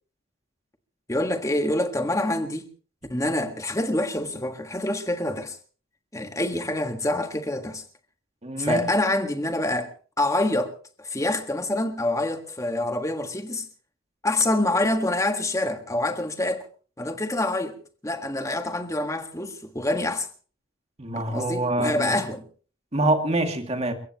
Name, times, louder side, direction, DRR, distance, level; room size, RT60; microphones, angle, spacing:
voice 1, 1.1-2.7 3.1-5.6 6.1-7.8 8.6-10.7 11.0-13.7 14.2-16.7 17.0-17.8 18.0-20.3 21.3-22.4, left 1 dB, 15° left, 1.6 m, -26 dB
voice 2, 8.4-8.9 21.0-22.1 22.9-23.9, right 2 dB, 30° right, 2.3 m, -25 dB
29.5 x 15.5 x 3.0 m
head